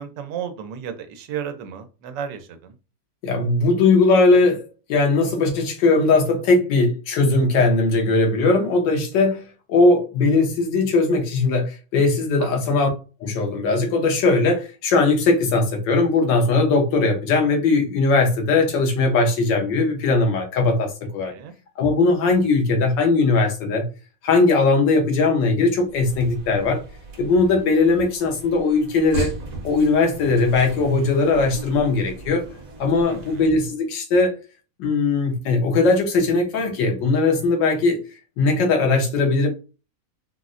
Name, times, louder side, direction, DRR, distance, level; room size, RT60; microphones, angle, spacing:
voice 1, 0.0-2.7 12.4-12.7 21.2-21.5 33.1-33.5, right 8 dB, 85° right, 1.3 m, -34 dB
voice 2, 3.2-12.9 13.2-21.3 21.8-23.8 24.2-26.8 27.2-29.3 29.6-32.4 32.8-34.4 34.8-38.0 38.4-39.5, left 3 dB, 90° left, 1.5 m, -19 dB
sound 1, 25.8-33.7, right 3 dB, 60° right, 1.1 m, -37 dB
4.0 x 2.0 x 2.4 m
omnidirectional pair, 1.9 m